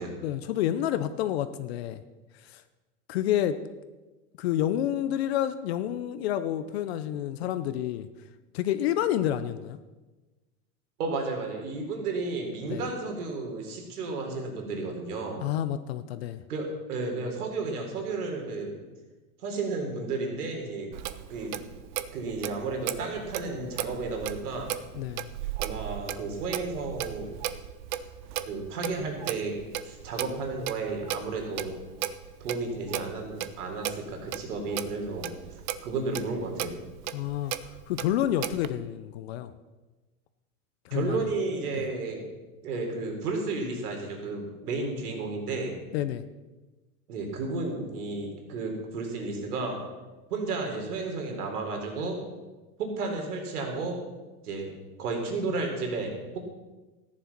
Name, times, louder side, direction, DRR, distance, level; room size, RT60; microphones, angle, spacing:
voice 1, 0.2-2.0 2.4-2.6 3.1-3.6 4.4-8.1 8.5-9.8 12.7-12.8 15.4-16.4 25.0-25.3 37.1-39.5 40.9-41.2 41.7-41.9 45.9-46.2, left 11 dB, 45° left, 12 dB, 0.6 m, -29 dB
voice 2, 11.0-15.5 16.5-18.8 19.4-20.9 21.3-21.6 22.1-24.7 25.6-27.3 28.4-29.5 29.8-31.7 32.4-35.3 35.8-36.7 40.9-42.2 42.6-45.7 47.1-49.8 50.3-52.2 52.8-54.0 54.4-54.7 55.0-56.4, right 3 dB, 75° right, 2 dB, 4.0 m, -32 dB
Clock, 20.9-38.7, right 12 dB, 35° right, 0.4 m, -36 dB
14.5 x 10.0 x 5.9 m, 1.2 s
supercardioid pair, 155°, 45 cm